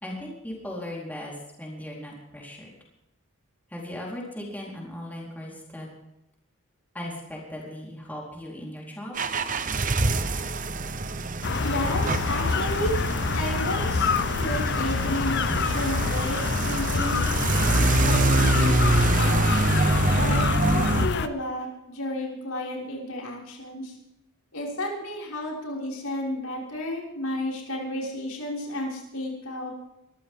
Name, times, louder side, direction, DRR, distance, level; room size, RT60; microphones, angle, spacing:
voice 1, 0.0-2.7 3.7-5.9 6.9-9.2 9.9-10.0, left 1 dB, 10° left, -3 dB, 4.3 m, -37 dB
sound 1, 9.1-21.1, right 2 dB, 35° right, 0.9 m, -25 dB
sound 2, 11.4-21.3, left 5 dB, 50° left, 0.7 m, -26 dB
voice 2, 11.6-13.0 13.3-17.2 17.6-19.5 20.1-24.0 24.5-29.7, left 1 dB, 80° left, -3 dB, 6.2 m, -32 dB
23.5 x 14.5 x 3.8 m, 0.89 s
head